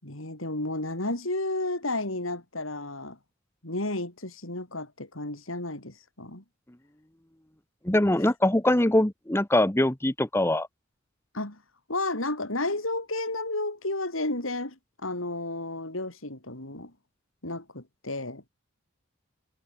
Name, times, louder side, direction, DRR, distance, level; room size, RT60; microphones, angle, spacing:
voice 1, 0.0-3.2 3.6-6.4 11.3-11.6 11.9-16.9 17.4-18.4, left 2 dB, 75° left, 6.4 m, -32 dB
voice 2, 7.8-10.7, left 1 dB, 10° left, 1.2 m, -23 dB
head